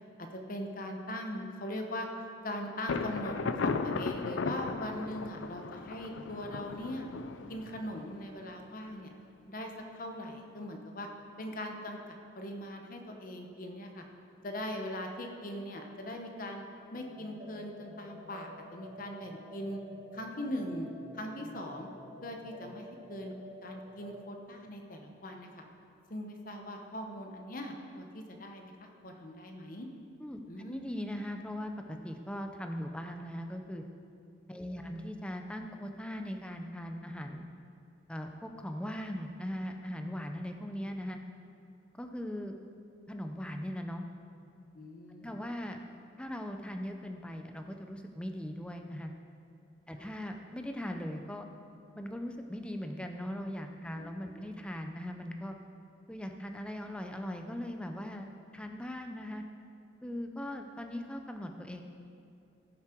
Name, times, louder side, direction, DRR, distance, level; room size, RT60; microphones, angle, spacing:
voice 1, 0.2-7.1 7.5-9.1 9.5-11.1 11.4-14.0 14.4-16.6 16.9-19.8 20.1-20.9 21.1-21.9 22.2-23.3 23.6-25.6 26.1-29.9 30.5-30.8 34.7-35.0 44.7-45.5 50.0-50.1 53.9-54.0 54.3-54.5, left 1 dB, 45° left, 3 dB, 0.9 m, -40 dB
Thunder, 2.9-8.5, left 4 dB, 75° left, 0.5 m, -36 dB
sound 1, 16.9-24.3, equal, 65° right, 2.3 m, -50 dB
voice 2, 30.2-33.8 34.5-37.4 38.1-41.2 42.0-42.5 43.1-44.0 45.2-45.8 46.2-49.1 49.9-51.5 51.9-55.6 56.1-58.3 58.5-59.4 60.0-61.8, equal, 5° left, 4 dB, 0.5 m, -39 dB
16.0 x 7.2 x 4.5 m, 2.6 s
head